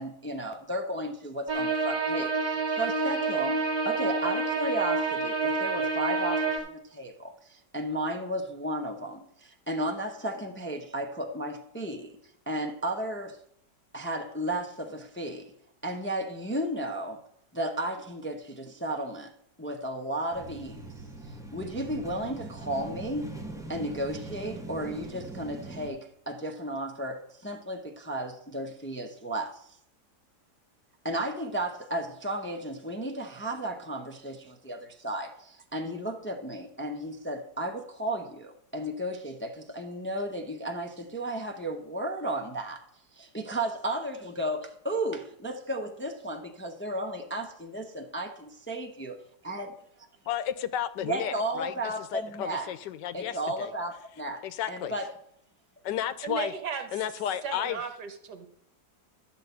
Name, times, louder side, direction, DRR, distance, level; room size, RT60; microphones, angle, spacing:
voice 1, 0.0-12.2 12.5-13.4 13.9-15.5 15.8-17.2 17.5-19.3 19.6-21.0 21.5-23.3 23.7-29.6 31.0-42.8 43.1-49.8 51.0-52.7 53.1-55.1, right 1 dB, 15° left, 0.5 m, -34 dB
sound 1, 1.5-6.6, right 3 dB, 25° right, 2.0 m, -28 dB
sound 2, 20.3-25.9, right 2 dB, ahead, 0.9 m, -41 dB
voice 2, 50.3-53.7 54.4-54.9 55.8-56.5 56.9-57.8, left 10 dB, 85° left, 1.3 m, -33 dB
voice 3, 56.2-56.9 57.4-58.5, right 7 dB, 70° right, 1.7 m, -35 dB
11.5 x 4.4 x 8.1 m
omnidirectional pair, 1.9 m